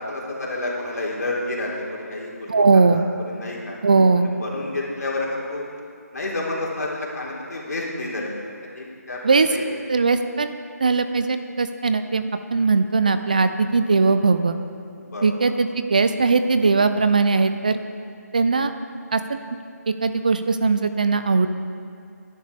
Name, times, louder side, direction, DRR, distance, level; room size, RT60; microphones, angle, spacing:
voice 1, 0.0-2.5 2.9-3.7 4.2-5.6 6.1-8.3 8.7-9.2 9.5-9.6 15.1-15.3, left 2 dB, 70° left, -3 dB, 3.2 m, -29 dB
voice 2, 2.5-3.0 3.8-4.3 9.2-9.6 9.9-10.5 10.8-12.2 12.5-14.6 15.2-17.8 18.3-18.7 19.1-19.4 19.9-21.5, right 4 dB, 30° right, 9 dB, 0.4 m, -19 dB
16.0 x 10.5 x 3.5 m, 2.3 s
hypercardioid pair, 175°, 9 cm